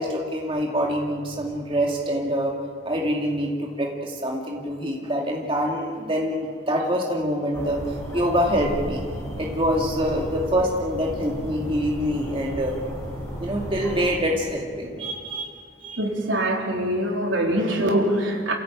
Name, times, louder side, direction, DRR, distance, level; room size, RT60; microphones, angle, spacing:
voice 1, 0.0-2.5 2.9-7.8 8.1-9.0 9.4-12.8 13.4-16.0, equal, 25° right, -1 dB, 2.5 m, -25 dB
sound 1, 7.5-14.2, equal, 15° left, 6.8 m, -34 dB
voice 2, 16.0-18.5, right 1 dB, 70° right, 1 dB, 3.9 m, -23 dB
28.0 x 16.5 x 9.0 m, 2.1 s
head